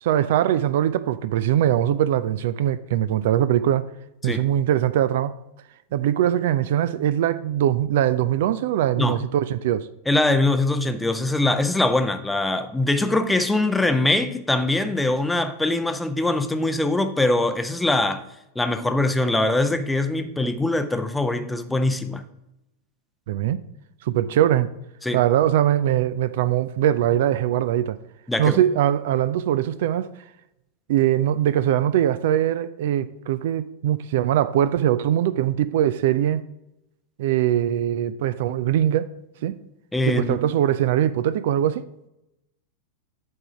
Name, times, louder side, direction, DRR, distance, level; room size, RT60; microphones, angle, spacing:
voice 1, 0.0-3.9 4.2-5.3 5.9-9.9 23.3-23.6 24.0-24.7 25.1-28.0 28.4-30.1 30.9-36.4 37.2-39.1 39.4-39.5 40.0-41.8, right 11 dB, 55° right, 0.3 m, -21 dB
voice 2, 10.1-18.2 18.6-22.2 25.0-25.2 28.3-28.6 39.9-40.4, left 2 dB, 5° left, 0.6 m, -22 dB
7.9 x 3.7 x 5.6 m
figure-of-eight pair, 90°, 0 cm